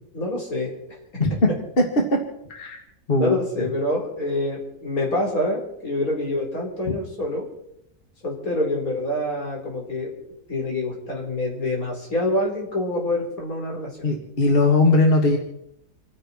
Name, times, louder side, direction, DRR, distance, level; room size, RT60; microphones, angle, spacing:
voice 1, 0.1-0.7 1.3-1.4 3.1-7.5 8.2-10.1 10.5-14.0, left 1 dB, 65° left, -1 dB, 4.6 m, -26 dB
voice 2, 3.1-3.7 6.9-7.0 14.0-15.4, left 2 dB, 35° left, 2 dB, 2.0 m, -19 dB
29.5 x 10.0 x 4.4 m, 0.78 s
omnidirectional pair, 1.6 m